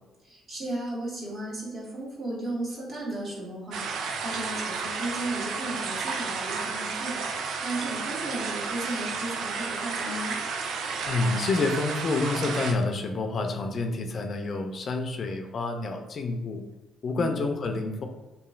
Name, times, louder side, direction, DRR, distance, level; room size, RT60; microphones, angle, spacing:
voice 1, 0.2-10.3 17.1-17.4, right 1 dB, 50° right, -5 dB, 1.4 m, -35 dB
sound 1, 3.7-12.7, right 5 dB, 70° right, 0.3 m, -32 dB
voice 2, 11.1-16.6 17.0-18.1, left 3 dB, 50° left, 5 dB, 0.3 m, -28 dB
2.9 x 2.6 x 2.4 m, 1.2 s
supercardioid pair, 60°, 0 cm